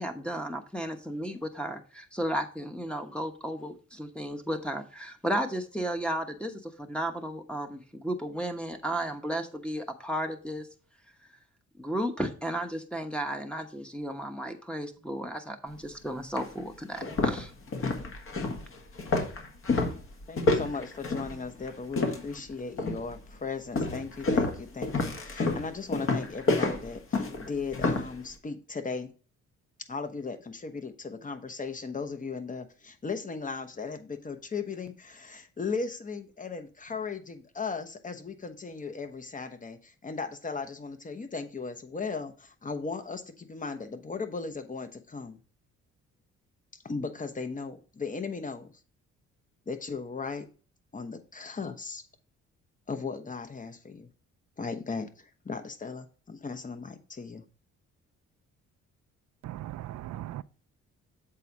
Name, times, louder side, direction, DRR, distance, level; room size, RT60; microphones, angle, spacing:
voice 1, 0.0-10.7 11.8-17.5, right 1 dB, 5° left, 1.0 m, -34 dB
sound 1, 15.8-15.9 16.4-16.5 16.9-22.4 22.8-23.2 23.7-28.1, left 3 dB, 45° left, 1.7 m, -29 dB
voice 2, 20.3-29.1 29.9-45.4 46.7-48.7 49.7-50.5 50.9-52.0 52.9-54.1 54.6-57.4, left 4 dB, 25° left, 1.1 m, -37 dB
voice 3, 59.4-60.4, right 14 dB, 65° right, 0.5 m, -38 dB
7.7 x 4.2 x 4.8 m
cardioid pair, 90°, 30 cm